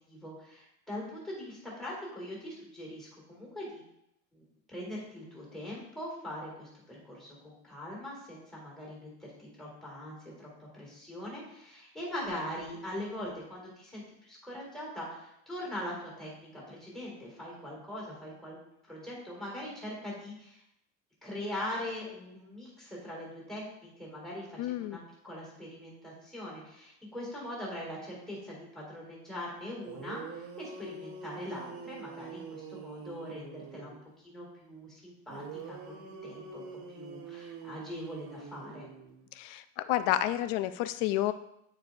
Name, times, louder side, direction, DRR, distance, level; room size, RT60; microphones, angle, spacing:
voice 1, 0.1-3.8 4.3-9.1 9.4-18.6 18.9-20.6 21.2-34.0 34.2-38.9, left 1 dB, ahead, -5 dB, 2.0 m, -42 dB
voice 2, 24.6-25.0 39.4-41.3, left 13 dB, 85° left, 13 dB, 0.5 m, -30 dB
sound 1, 29.9-34.0 35.3-39.3, right 4 dB, 90° right, 1.2 m, -45 dB
8.9 x 4.6 x 2.6 m, 0.79 s
cardioid pair, 170°, 32 cm